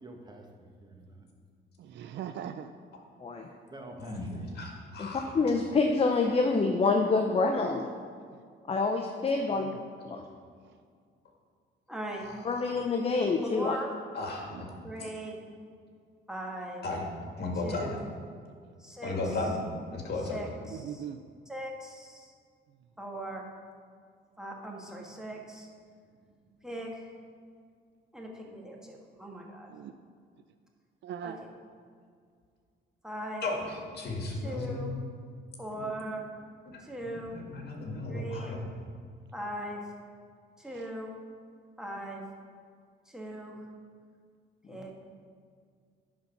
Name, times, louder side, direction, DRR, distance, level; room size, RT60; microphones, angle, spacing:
voice 1, 0.0-1.3 3.7-4.8 5.1-5.5, right 1 dB, 20° right, 2 dB, 1.2 m, -49 dB
voice 2, 1.8-2.7 7.6-7.8 9.4-9.7 14.5-14.6 20.7-21.2 29.7-29.9 31.0-31.4 38.1-38.2 40.7-40.9, right 9 dB, 65° right, 9 dB, 0.4 m, -41 dB
voice 3, 4.0-5.2 12.6-12.7 14.1-14.7 16.8-17.0 17.4-17.9 19.0-19.6 19.9-20.4 33.4-33.5 33.9-34.8 36.7-38.6, left 2 dB, 55° left, 0 dB, 2.0 m, -35 dB
voice 4, 5.0-7.9 8.7-9.7 10.0-10.2 12.4-13.8, left 3 dB, 30° left, 4 dB, 0.6 m, -27 dB
voice 5, 11.9-12.2 13.5-14.0 14.8-15.4 16.3-16.9 17.6-18.0 18.8-19.5 20.2-21.0 21.5-22.3 23.0-23.5 24.4-25.7 26.6-27.1 28.1-29.7 31.2-31.5 33.0-33.5 34.4-34.9 35.6-36.3 36.8-37.4 38.1-38.6 39.3-39.8 40.6-41.1 41.8-42.2 43.1-43.6 44.7-44.9, right 1 dB, 5° right, -1 dB, 1.5 m, -39 dB
10.5 x 4.1 x 5.9 m, 2.1 s
cardioid pair, 90°, 20 cm